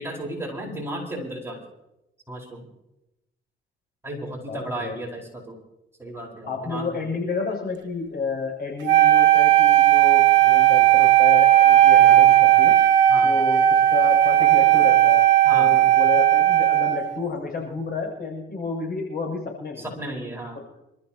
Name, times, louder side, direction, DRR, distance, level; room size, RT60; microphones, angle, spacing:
voice 1, 0.0-1.6 2.3-2.6 4.0-5.6 6.0-7.1 13.1-13.3 15.4-15.7 19.8-20.6, right 1 dB, 10° right, -2 dB, 4.8 m, -34 dB
voice 2, 4.5-5.0 6.5-12.8 13.2-15.3 15.5-19.9, left 4 dB, 50° left, 0 dB, 7.0 m, -30 dB
Wind instrument woodwind instrument, 8.8-17.1, right 13 dB, 70° right, 1.5 m, -16 dB
27.5 x 14.0 x 2.9 m, 0.90 s
cardioid pair, 90°, 20 cm